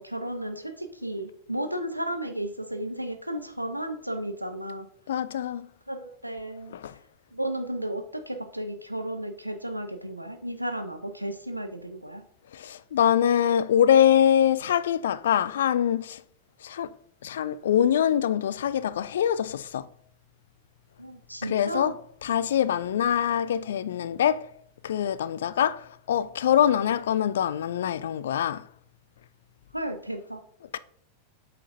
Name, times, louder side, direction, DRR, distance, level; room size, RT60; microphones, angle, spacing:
voice 1, 0.0-4.9 5.9-6.7 7.3-12.2 21.0-21.9 29.7-30.4, right 1 dB, 90° right, 0.8 m, -33 dB
voice 2, 5.1-5.7 6.7-6.9 12.5-16.2 16.6-16.9 17.2-19.9 21.4-24.5 24.8-28.6 30.7-30.8, left 9 dB, 60° left, 0.3 m, -24 dB
8.2 x 5.9 x 2.7 m
figure-of-eight pair, 90°, 0 cm